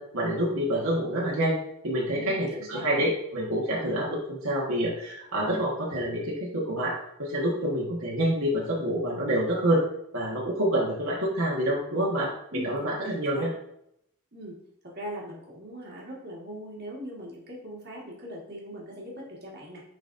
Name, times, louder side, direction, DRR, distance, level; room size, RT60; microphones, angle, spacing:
voice 1, 0.0-1.6 1.8-9.8 10.1-13.5, right 1 dB, 70° right, -4 dB, 1.4 m, -27 dB
voice 2, 2.1-3.1 12.5-13.5 14.3-14.6 14.8-19.8, equal, 45° right, -4 dB, 1.6 m, -40 dB
9.1 x 4.0 x 2.6 m, 0.74 s
head